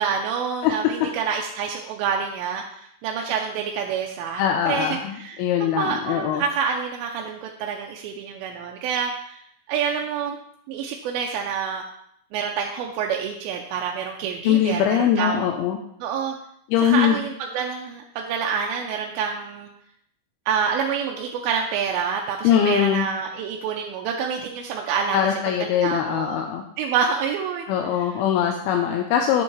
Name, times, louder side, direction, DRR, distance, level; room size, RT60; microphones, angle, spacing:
voice 1, 0.0-9.4 9.7-10.4 10.7-11.8 12.3-15.4 16.0-16.4 16.8-19.7 20.5-25.2 25.6-26.4 26.8-27.7 28.0-28.1, right 6 dB, 85° right, 1 dB, 2.4 m, -27 dB
voice 2, 4.4-6.4 14.4-15.8 16.7-17.2 22.4-23.1 25.1-26.6 27.7-29.4, left 9 dB, 85° left, 3 dB, 2.5 m, -21 dB
7.9 x 7.0 x 3.2 m, 0.71 s
omnidirectional pair, 4.4 m